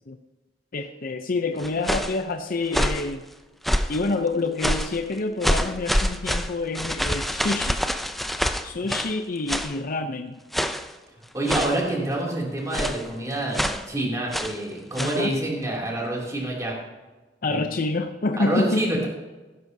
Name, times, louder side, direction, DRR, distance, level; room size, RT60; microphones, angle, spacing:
voice 1, 0.7-3.2 3.9-7.8 8.6-10.4 15.0-15.3 17.4-18.8, left 3 dB, 50° left, 6 dB, 0.6 m, -27 dB
sound 1, 1.6-2.2 2.7-3.1 3.6-4.0 4.6-5.0 5.4-9.2 9.5-9.8 10.5-10.9 11.5-11.9 12.7-13.1 13.5-13.9 14.3-14.6 14.9-15.2, equal, ahead, 0.5 m, -26 dB
voice 2, 11.3-16.8 17.5-17.6 18.4-19.1, right 1 dB, 20° right, -3 dB, 2.8 m, -27 dB
16.0 x 12.0 x 2.8 m, 1.2 s
head